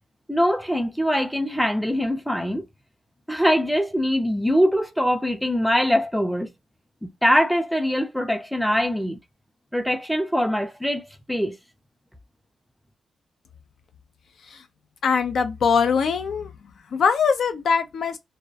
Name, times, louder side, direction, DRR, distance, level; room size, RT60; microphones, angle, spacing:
voice 1, 0.3-2.6 3.3-6.5 7.2-9.2 9.7-11.6, equal, ahead, 0.4 m, -22 dB
voice 2, 15.0-16.5 16.9-18.2, left 6 dB, 70° left, 0.4 m, -22 dB
2.3 x 2.0 x 2.6 m
wide cardioid pair, 135°, 0 cm